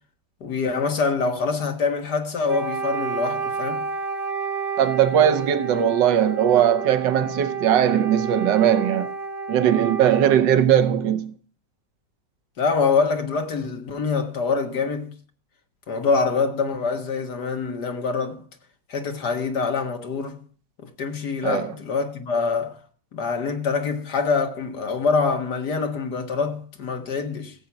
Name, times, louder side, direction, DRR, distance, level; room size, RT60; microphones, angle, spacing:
voice 1, 0.4-3.9 12.6-15.1 15.9-18.4 18.9-20.4 20.8-22.8 23.1-27.5, left 4 dB, 65° left, 2.1 m, -25 dB
Wind instrument woodwind instrument, 2.5-10.5, right 5 dB, 70° right, 2.7 m, -30 dB
voice 2, 4.8-9.1 9.5-11.3 21.4-21.7, right 10 dB, 90° right, 1.5 m, -19 dB
16.0 x 7.7 x 5.8 m
omnidirectional pair, 1.9 m